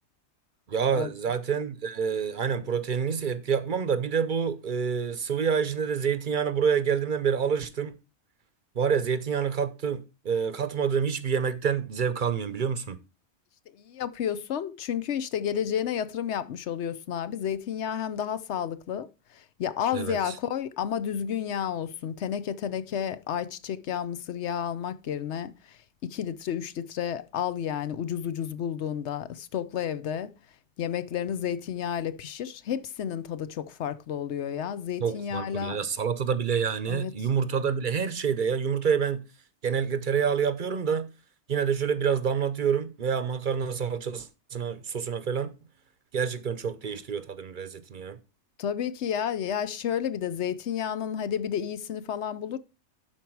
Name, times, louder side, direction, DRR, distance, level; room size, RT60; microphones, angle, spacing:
voice 1, 0.7-8.0 8.8-13.0 19.9-20.4 35.0-39.2 39.6-41.1 41.5-45.5 46.1-48.2, right 7 dB, 50° right, 0.8 m, -27 dB
voice 2, 13.8-19.1 19.3-25.8 26.0-30.3 30.8-35.8 36.9-37.1 48.6-52.6, left 9 dB, 75° left, 1.0 m, -31 dB
12.0 x 4.6 x 4.6 m
omnidirectional pair, 1.2 m